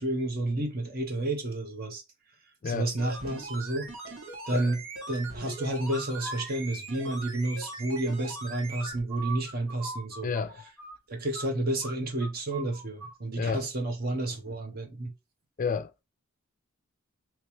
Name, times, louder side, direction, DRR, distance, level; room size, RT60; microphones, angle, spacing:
voice 1, 0.0-2.0 2.6-4.1 4.5-4.8 5.1-10.3 11.1-15.1, right 2 dB, 45° right, 0.9 m, -31 dB
sound 1, 2.9-9.0 9.3-9.4, right 2 dB, 75° right, 1.4 m, -41 dB
sound 2, 5.9-6.5 8.8-11.5 11.8-12.0 12.2-13.2, right 2 dB, 10° right, 1.3 m, -41 dB
voice 2, 10.2-10.6 13.3-13.6 15.6-15.9, left 5 dB, 40° left, 0.4 m, -30 dB
3.2 x 2.9 x 2.9 m
head